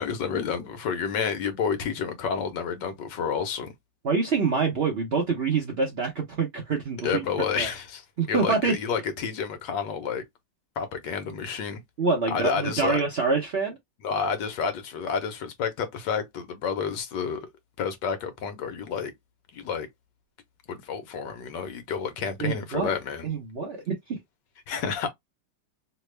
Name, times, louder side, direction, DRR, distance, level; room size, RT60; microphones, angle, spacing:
voice 1, 0.0-3.7 7.0-10.2 10.8-11.8 12.3-13.0 14.0-17.5 17.8-19.1 19.5-19.9 20.7-23.3 24.7-25.1, left 6 dB, 80° left, 1.4 m, -30 dB
voice 2, 4.0-7.7 8.2-8.8 12.0-13.8 22.4-22.9 23.2-24.2, right 4 dB, 55° right, 0.7 m, -26 dB
3.4 x 2.1 x 3.2 m
omnidirectional pair, 1.9 m